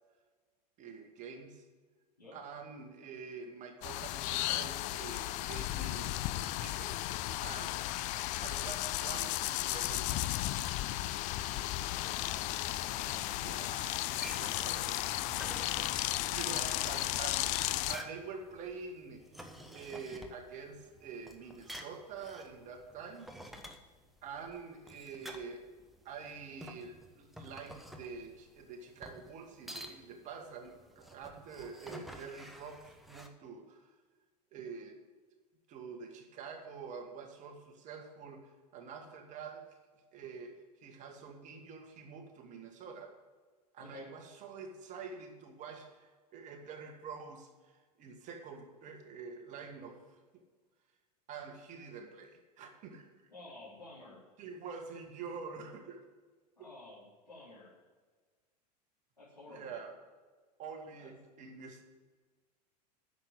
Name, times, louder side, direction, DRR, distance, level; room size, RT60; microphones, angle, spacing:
voice 1, 0.8-1.6 2.3-6.2 6.6-7.1 7.4-7.8 8.4-10.3 11.5-11.8 13.4-14.0 14.4-15.0 16.3-19.3 19.7-23.3 24.2-25.7 26.1-33.9 34.5-35.0 35.7-39.7 40.1-43.1 43.7-47.7 48.0-50.0 50.3-50.4 51.3-53.1 54.4-56.1 56.6-56.7 59.5-60.0 60.6-61.8, right 5 dB, 35° right, 4 dB, 1.8 m, -46 dB
sound 1, 3.8-18.0, left 16 dB, 35° left, 0.4 m, -34 dB
voice 2, 11.9-12.4 12.9-13.4 14.2-15.0 43.8-44.1 53.3-54.2 56.6-57.7 59.2-59.8 61.0-61.1, left 2 dB, 90° left, -12 dB, 3.9 m, -52 dB
sound 2, 14.0-33.3, equal, ahead, 1.1 m, -51 dB
9.6 x 6.6 x 8.6 m, 1.4 s
figure-of-eight pair, 85°, 21 cm